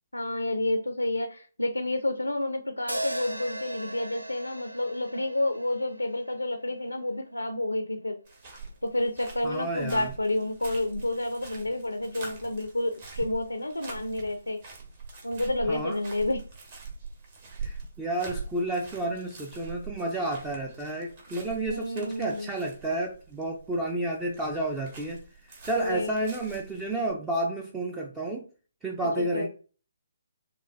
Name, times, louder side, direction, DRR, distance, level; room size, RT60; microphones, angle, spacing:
voice 1, 0.1-8.2 8.8-14.6 15.2-16.4 21.7-22.5 25.8-26.3 29.0-29.5, left 1 dB, 85° left, 7 dB, 0.5 m, -30 dB
sound 1, 2.9-7.2, right 1 dB, 85° right, 0.5 m, -38 dB
sound 2, 8.3-27.1, right 4 dB, 40° right, 1.3 m, -44 dB
voice 2, 9.4-10.1 15.7-16.0 17.6-28.5 28.8-29.5, right 1 dB, 10° right, 1 dB, 0.4 m, -31 dB
5.9 x 2.2 x 2.4 m, 0.39 s
figure-of-eight pair, 140°, 0 cm